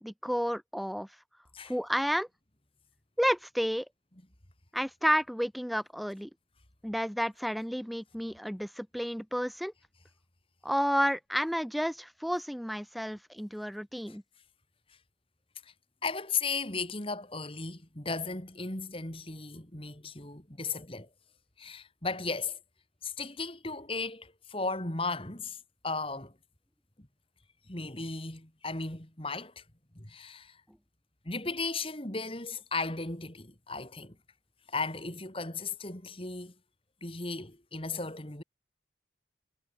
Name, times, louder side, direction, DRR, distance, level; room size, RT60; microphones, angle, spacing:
voice 1, 0.0-1.1 1.7-2.3 3.2-3.8 4.7-6.3 6.8-9.7 10.6-14.2, equal, ahead, 1.6 m, -31 dB
voice 2, 16.0-21.1 21.6-22.6 23.0-25.6 25.8-26.3 27.7-29.6 29.9-30.6 31.2-34.1 34.7-36.5 37.0-38.4, left 4 dB, 30° left, 2.8 m, -36 dB
head